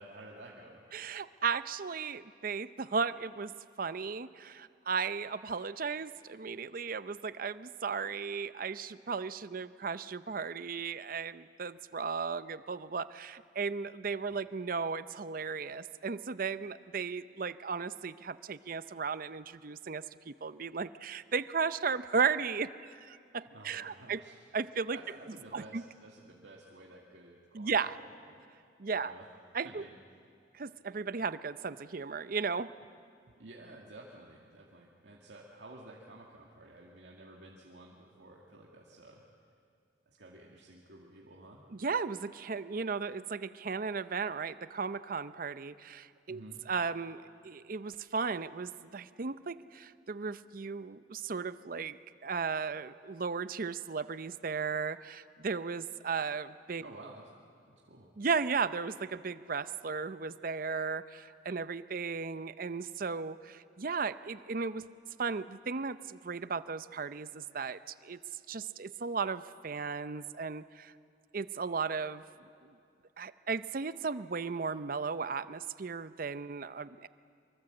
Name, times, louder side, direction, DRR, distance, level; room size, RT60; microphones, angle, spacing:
voice 1, 0.0-0.8 23.5-24.5 24.9-28.5 29.0-29.3 29.6-29.9 33.4-39.2 40.1-41.6 46.3-46.6 56.8-57.3 57.7-58.1, right 2 dB, 85° right, -3 dB, 2.2 m, -52 dB
voice 2, 0.9-24.2 24.5-25.0 25.5-25.8 27.5-28.0 28.8-29.1 29.5-29.8 30.5-32.7 41.8-46.4 46.7-56.8 58.2-64.8 65.2-68.2 68.5-70.9 71.3-72.2 72.6-72.7 73.2-77.1, right 5 dB, 50° right, 14 dB, 0.6 m, -35 dB
24.0 x 23.5 x 7.8 m, 2.4 s
head